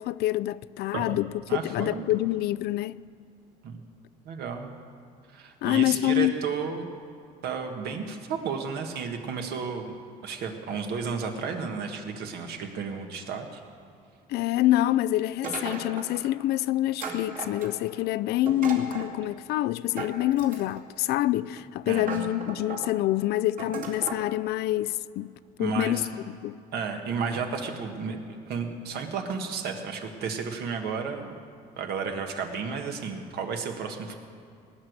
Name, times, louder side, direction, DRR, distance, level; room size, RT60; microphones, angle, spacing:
voice 1, 0.0-3.0 5.6-6.3 14.3-25.3 25.6-26.6, left 15 dB, 75° left, 0.4 m, -26 dB
voice 2, 1.5-2.1 3.6-3.8 4.3-4.7 5.3-6.9 7.4-9.9 10.2-13.6 21.9-22.1 25.6-26.1 26.7-28.2 28.5-31.4 31.8-34.1, right 5 dB, 70° right, 1.7 m, -32 dB
sound 1, 15.4-16.2 17.0-18.0 18.5-19.1 20.0-20.9 21.6-21.7 22.0-22.9 23.6-24.2, right 4 dB, 50° right, 2.4 m, -36 dB
19.5 x 6.5 x 9.5 m
cardioid pair, 110°, 17 cm